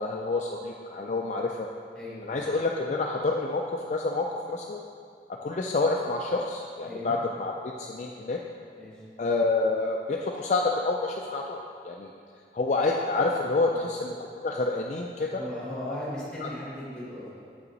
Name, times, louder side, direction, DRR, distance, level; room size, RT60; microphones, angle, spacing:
voice 1, 0.0-1.7 2.2-4.8 5.3-8.4 9.2-12.1 12.5-15.4 15.9-16.0 16.4-16.5, left 3 dB, 40° left, 0 dB, 0.3 m, -28 dB
voice 2, 1.9-2.4 6.8-7.2 8.7-9.0 13.7-13.9 15.3-17.4, left 1 dB, 5° left, -8 dB, 2.0 m, -38 dB
7.9 x 5.6 x 4.0 m, 2.2 s
head